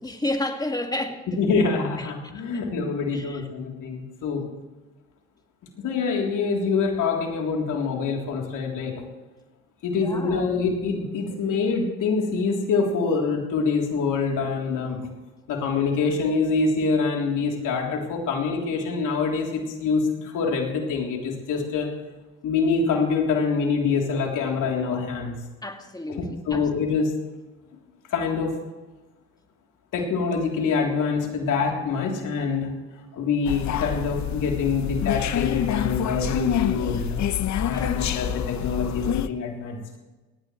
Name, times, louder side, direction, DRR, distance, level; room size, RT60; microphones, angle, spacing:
voice 1, 0.0-1.2 3.1-3.4 10.0-10.6 25.6-26.2 26.5-26.6 37.7-38.0, left 1 dB, 10° left, 2.3 m, -30 dB
voice 2, 1.4-4.4 5.8-8.9 9.8-15.0 15.5-21.9 22.4-25.3 26.1-27.1 28.1-28.6 29.9-32.7 33.1-37.2 37.7-39.8, left 4 dB, 75° left, 3.5 m, -25 dB
sound 1, 33.5-39.3, left 9 dB, 60° left, 0.8 m, -27 dB
19.0 x 17.0 x 3.3 m
supercardioid pair, 60°, 31 cm